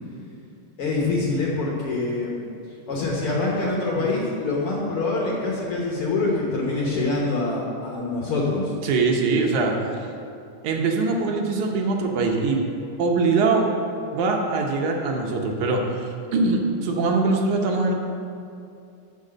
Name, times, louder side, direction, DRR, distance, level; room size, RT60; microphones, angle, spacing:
voice 1, 0.8-2.4 2.9-8.7, left 3 dB, 60° left, -3 dB, 1.7 m, -25 dB
voice 2, 8.8-9.7 10.6-12.6 13.0-13.7 14.1-17.9, right 3 dB, 75° right, 1 dB, 2.2 m, -22 dB
6.5 x 6.4 x 7.5 m, 2.5 s
omnidirectional pair, 3.5 m